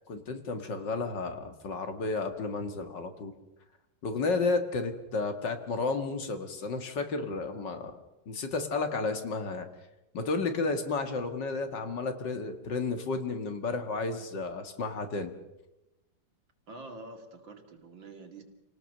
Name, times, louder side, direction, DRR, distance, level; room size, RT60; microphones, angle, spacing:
voice 1, 0.1-3.3 4.0-8.0 8.3-9.7 10.1-15.3, left 3 dB, 65° left, 7 dB, 2.4 m, -32 dB
voice 2, 16.7-18.4, right 2 dB, 75° right, 4 dB, 3.3 m, -46 dB
27.5 x 18.5 x 6.7 m, 0.95 s
omnidirectional pair, 2.1 m